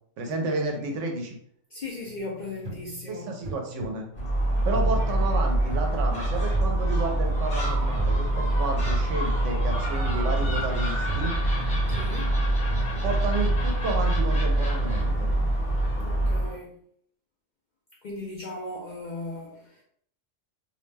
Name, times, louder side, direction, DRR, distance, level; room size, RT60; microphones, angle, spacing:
voice 1, 0.2-1.4 3.1-4.1 4.6-11.3 13.0-15.3, right 3 dB, 80° right, 2 dB, 1.0 m, -31 dB
voice 2, 1.7-3.3 11.9-12.3 16.0-16.7 18.0-19.8, left 2 dB, 60° left, -3 dB, 0.5 m, -37 dB
sound 1, 2.1-15.2, right 4 dB, 40° right, 0.9 m, -39 dB
Gull seagull, 4.1-16.6, right 1 dB, 40° left, 0.9 m, -25 dB
2.6 x 2.1 x 3.2 m, 0.64 s
omnidirectional pair, 1.2 m